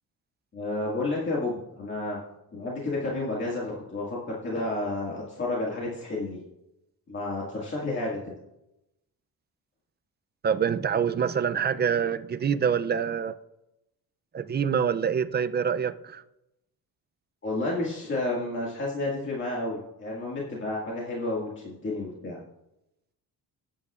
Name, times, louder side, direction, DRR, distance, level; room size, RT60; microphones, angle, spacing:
voice 1, 0.5-2.2 2.5-6.4 7.1-8.4 17.4-22.4, left 2 dB, 30° left, -5 dB, 1.9 m, -31 dB
voice 2, 10.4-13.3 14.3-16.2, right 7 dB, 30° right, 11 dB, 0.4 m, -26 dB
18.0 x 9.1 x 2.4 m, 0.89 s
cardioid pair, 145°, 37 cm